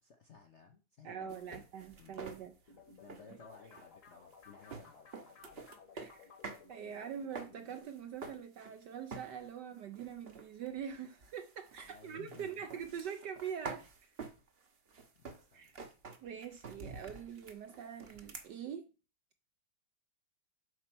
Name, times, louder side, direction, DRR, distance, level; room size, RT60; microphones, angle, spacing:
voice 1, 0.0-1.7 2.0-2.4 3.0-5.7 11.8-12.7 15.2-15.7, left 5 dB, 65° left, 0.6 m, -58 dB
voice 2, 1.0-2.5 3.3-3.4 6.0-6.3 6.7-14.1 15.5-15.9 16.2-18.9, right 8 dB, 70° right, 1.0 m, -44 dB
sound 1, 1.3-6.7 6.9-8.8 9.1-9.6 9.9-18.5, right 4 dB, 45° right, 0.8 m, -49 dB
sound 2, 2.7-7.8, left 5 dB, 45° left, 1.4 m, -58 dB
8.1 x 4.4 x 6.0 m
omnidirectional pair, 2.4 m